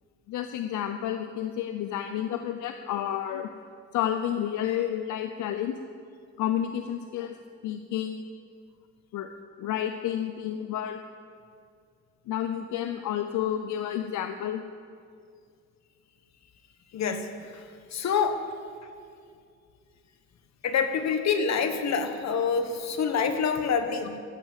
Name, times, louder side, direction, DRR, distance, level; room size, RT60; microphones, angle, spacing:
voice 1, 0.3-3.5 3.9-5.8 6.4-7.4 7.6-8.2 9.1-9.3 9.6-11.0 12.3-14.6, left 10 dB, 80° left, 8 dB, 0.7 m, -30 dB
voice 2, 16.9-17.7 17.9-18.5 20.6-24.2, left 6 dB, 60° left, 8 dB, 1.4 m, -27 dB
14.0 x 9.0 x 7.5 m, 2.3 s
cardioid pair, 90°, 30 cm